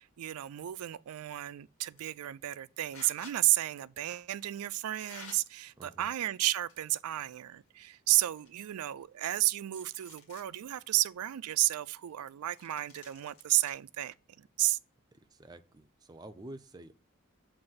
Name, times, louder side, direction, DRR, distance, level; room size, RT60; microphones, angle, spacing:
voice 1, 0.0-14.8, right 15 dB, 90° right, 0.3 m, -32 dB
sound 1, 1.9-2.2 2.9-3.4 4.3-4.4 4.9-5.4 6.3-6.9 7.2-7.3 7.9-8.0 8.3-9.3 9.6-10.5 11.0-11.1 12.5-13.7, left 3 dB, 90° left, 2.1 m, -52 dB
voice 2, 5.8-6.1 15.1-16.9, right 1 dB, 20° right, 0.4 m, -49 dB
7.6 x 2.6 x 5.5 m
head